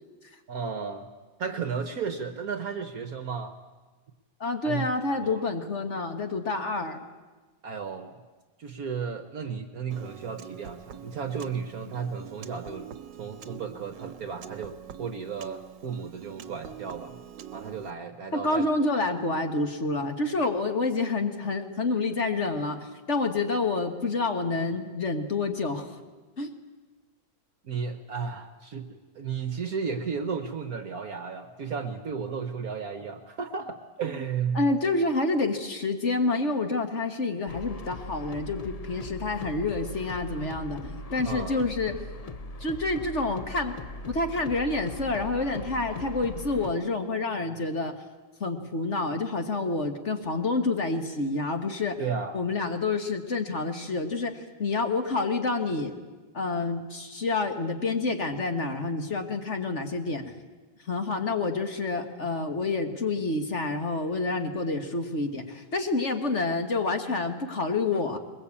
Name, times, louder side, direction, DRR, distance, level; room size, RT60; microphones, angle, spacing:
voice 1, 0.5-1.1 1.4-3.6 4.6-4.9 5.2-5.4 7.6-8.2 8.6-12.9 13.2-17.2 17.5-18.7 27.6-34.7 41.3-41.6 52.0-52.4, right 6 dB, 55° right, 8 dB, 1.4 m, -34 dB
voice 2, 4.4-7.0 18.3-25.9 26.4-26.5 34.5-41.9 42.6-43.8 44.1-47.9 48.4-52.0 52.3-55.9 56.3-60.3 60.9-68.2, left 3 dB, 40° left, 6 dB, 1.7 m, -28 dB
Piano, 9.9-17.9, right 10 dB, 75° right, 1.6 m, -45 dB
sound 1, 37.5-46.7, left 2 dB, 70° left, 0.3 m, -40 dB
21.5 x 21.0 x 8.5 m, 1.3 s
omnidirectional pair, 2.0 m